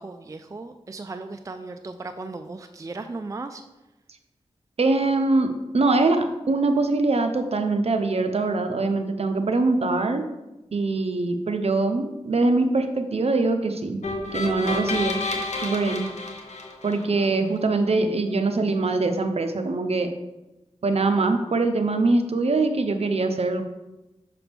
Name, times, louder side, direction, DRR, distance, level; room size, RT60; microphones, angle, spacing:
voice 1, 0.0-3.6, right 3 dB, 30° right, 7 dB, 0.3 m, -36 dB
voice 2, 4.8-10.2 10.7-14.0 14.3-15.2 15.6-16.1 16.8-20.1 20.8-23.6, right 3 dB, 60° right, 6 dB, 0.7 m, -23 dB
sound 1, 14.0-17.3, left 2 dB, 85° left, 0.9 m, -30 dB
5.9 x 5.8 x 3.5 m, 1.0 s
wide cardioid pair, 75°, 12 cm